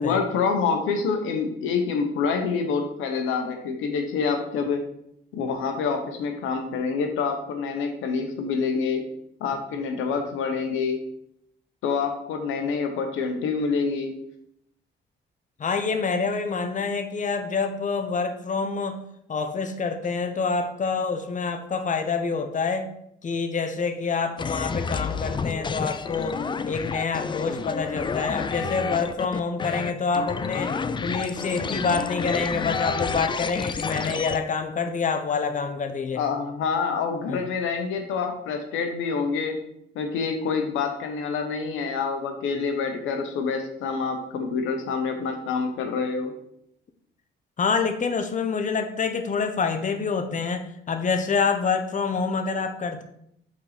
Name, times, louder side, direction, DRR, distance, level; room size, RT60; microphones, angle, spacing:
voice 1, 0.0-4.8 5.3-9.0 9.4-11.0 11.8-14.1 36.1-39.5 39.9-46.3, left 5 dB, 90° left, 5 dB, 1.1 m, -27 dB
voice 2, 15.6-19.0 19.3-22.9 23.2-26.4 26.7-36.2 37.3-37.4 47.6-53.0, left 5 dB, 40° left, 7 dB, 0.9 m, -27 dB
sound 1, 24.4-34.4, left 5 dB, 25° left, 0.4 m, -29 dB
5.4 x 4.1 x 5.0 m, 0.74 s
cardioid pair, 90°, 20 cm